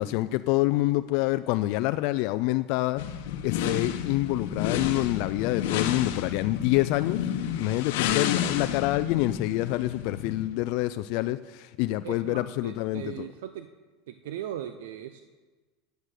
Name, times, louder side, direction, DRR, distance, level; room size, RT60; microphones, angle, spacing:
voice 1, 0.0-3.1 3.4-7.2 7.6-13.3, left 18 dB, 55° left, 12 dB, 0.3 m, -27 dB
sound 1, 3.0-10.5, left 9 dB, 80° left, 0.9 m, -31 dB
voice 2, 12.0-13.7 14.1-15.2, right 10 dB, 85° right, 9 dB, 0.6 m, -38 dB
9.6 x 9.3 x 6.6 m, 1.3 s
supercardioid pair, 155°, 0 cm